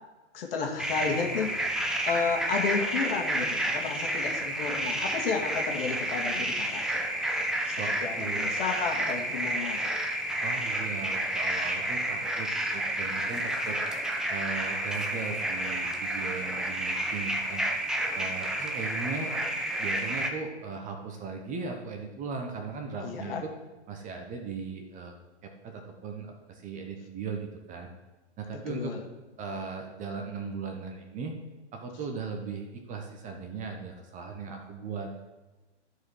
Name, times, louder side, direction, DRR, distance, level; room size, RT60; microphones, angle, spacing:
voice 1, 0.3-1.6 2.0-7.1 7.7-9.9 23.0-23.4 28.7-29.0, left 5 dB, 55° left, 1 dB, 2.0 m, -32 dB
sound 1, 0.8-20.3, right 1 dB, ahead, 0.5 m, -30 dB
voice 2, 7.8-8.5 10.4-13.8 14.3-17.6 18.1-19.3 19.8-23.5 23.9-25.1 25.4-27.9 28.4-28.9 29.4-31.4 31.7-35.1, right 5 dB, 20° right, 3 dB, 1.1 m, -38 dB
13.0 x 4.9 x 4.8 m, 1.2 s
hypercardioid pair, 120°, 35 cm